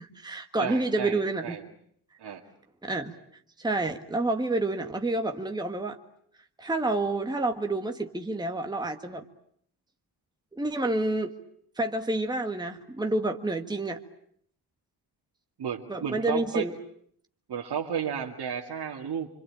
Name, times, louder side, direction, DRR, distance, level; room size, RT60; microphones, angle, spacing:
voice 1, 0.0-1.6 2.8-3.1 3.6-6.0 6.6-9.2 10.5-11.3 11.8-14.0 15.9-16.7, right 2 dB, 10° right, 4 dB, 1.6 m, -29 dB
voice 2, 0.6-1.6 2.2-2.4 15.6-16.7 17.5-19.3, right 7 dB, 75° right, -1 dB, 2.2 m, -33 dB
26.0 x 26.0 x 8.8 m, 0.66 s
wide cardioid pair, 125°, 40 cm